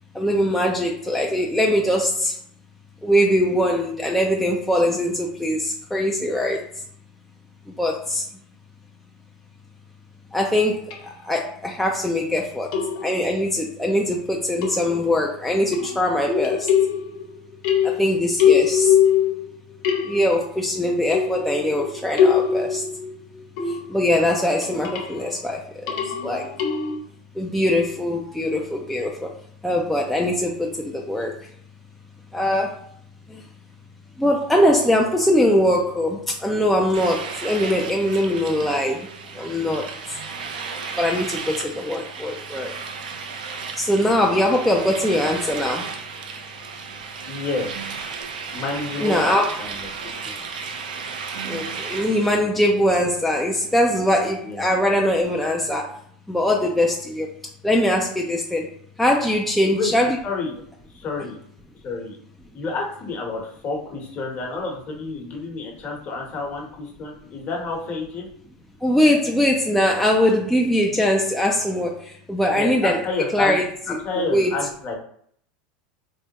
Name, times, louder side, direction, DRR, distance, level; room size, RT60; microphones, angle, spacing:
voice 1, 0.1-2.4 3.0-6.6 7.8-8.2 10.3-12.7 13.0-16.7 18.0-19.0 20.0-22.8 23.7-25.6 26.2-26.5 27.4-29.3 29.6-31.3 32.3-32.8 33.3-33.4 34.2-39.1 39.3-39.8 41.0-42.7 43.8-45.9 49.0-49.5 51.4-55.9 56.3-57.3 57.6-58.7 59.0-60.2 68.8-73.0 73.3-73.6 74.2-74.5, left 1 dB, 5° left, -1 dB, 0.4 m, -21 dB
sound 1, 10.9-11.0 12.7-13.3 14.6-15.2 15.7-17.3 17.6-19.5 19.8-20.5 21.1-24.1 24.6-25.2 25.9-27.0, left 8 dB, 65° left, 0.6 m, -22 dB
sound 2, 36.9-52.3, right 5 dB, 85° right, 0.4 m, -34 dB
voice 2, 47.2-47.7 48.5-49.9 50.2-50.3 54.4-54.6 59.6-59.9 60.2-60.5 60.9-61.4 61.8-62.2 62.5-68.3 72.5-75.0, left 3 dB, 40° left, 0 dB, 1.0 m, -29 dB
3.4 x 2.1 x 2.9 m, 0.64 s
hypercardioid pair, 95°, 4 cm